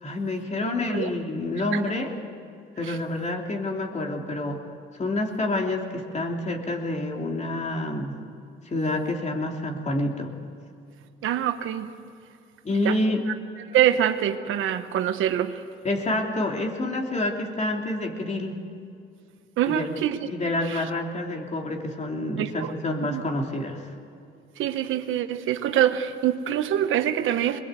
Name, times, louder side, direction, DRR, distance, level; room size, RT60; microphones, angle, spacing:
voice 1, 0.0-2.1 2.8-4.6 5.0-8.2 8.7-10.3 12.6-13.2 15.8-18.6 19.7-19.9 20.2-23.8, left 2 dB, 35° left, 1 dB, 3.2 m, -28 dB
voice 2, 11.2-11.9 12.8-13.0 13.7-15.6 19.6-20.2 20.7-20.8 22.4-22.7 23.1-23.2 24.6-27.6, right 11 dB, 80° right, 9 dB, 1.2 m, -25 dB
21.5 x 21.5 x 8.3 m, 2.4 s
cardioid pair, 90°, 20 cm